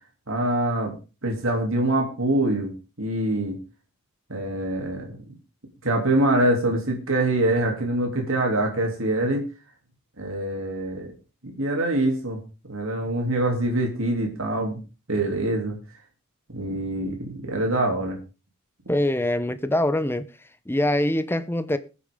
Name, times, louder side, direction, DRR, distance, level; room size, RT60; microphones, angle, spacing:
voice 1, 0.3-0.9 1.2-3.6 4.3-5.1 5.8-9.4 10.2-11.1 11.4-12.4 12.7-14.8 15.1-15.8 16.5-18.2, right 1 dB, 65° right, 2.9 m, -24 dB
voice 2, 18.9-20.2 20.7-21.8, left 1 dB, 10° left, 0.7 m, -23 dB
20.5 x 8.4 x 3.7 m
head